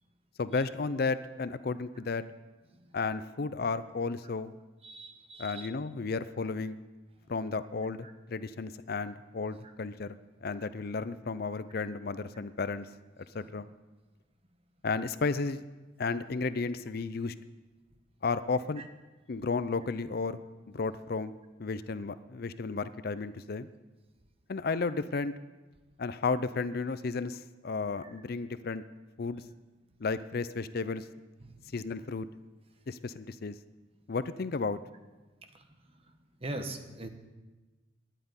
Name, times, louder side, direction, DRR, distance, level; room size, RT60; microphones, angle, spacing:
voice 1, 0.4-2.2 2.9-4.5 5.4-6.8 7.3-12.9 13.3-13.7 14.8-15.6 16.0-17.3 18.2-18.8 19.3-20.4 20.7-21.3 21.6-23.7 24.5-25.3 26.0-28.8 29.2-29.4 30.0-31.0 31.7-32.3 32.9-33.5 34.1-34.8, left 4 dB, 50° left, 14 dB, 0.5 m, -33 dB
voice 2, 4.8-5.7 36.4-37.1, right 2 dB, 30° right, 6 dB, 1.1 m, -39 dB
10.5 x 9.0 x 9.6 m, 1.2 s
head